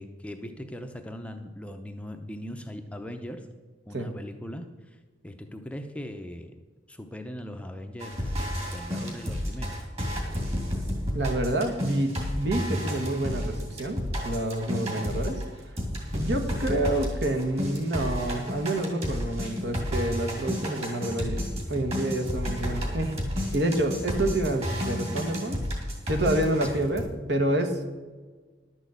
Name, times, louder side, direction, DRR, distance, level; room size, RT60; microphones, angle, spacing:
voice 1, 0.0-3.5 3.9-6.5 6.9-8.4 8.7-9.9 14.7-15.1 26.7-26.8, left 1 dB, 5° left, 5 dB, 0.6 m, -40 dB
sound 1, 8.0-15.5 15.8-27.0, equal, 35° right, 2.7 m, -31 dB
voice 2, 11.1-15.4 16.1-21.4 21.7-25.6 26.1-27.0 27.3-27.8, right 1 dB, 60° right, 5 dB, 1.4 m, -28 dB
11.5 x 6.3 x 8.1 m, 1.4 s
head